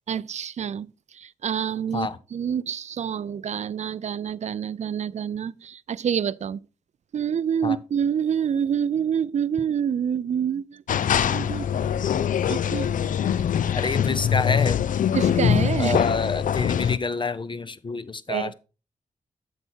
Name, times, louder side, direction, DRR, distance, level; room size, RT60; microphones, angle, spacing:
voice 1, 0.1-0.9 1.1-6.6 7.1-12.0 12.5-13.2 15.1-16.0 18.3-18.5, right 8 dB, 55° right, 0.4 m, -27 dB
sound 1, 10.9-17.0, left 8 dB, 65° left, 0.4 m, -23 dB
voice 2, 13.7-14.8 15.8-18.5, left 4 dB, 35° left, 0.7 m, -28 dB
8.0 x 5.8 x 4.4 m
cardioid pair, 55°, 14 cm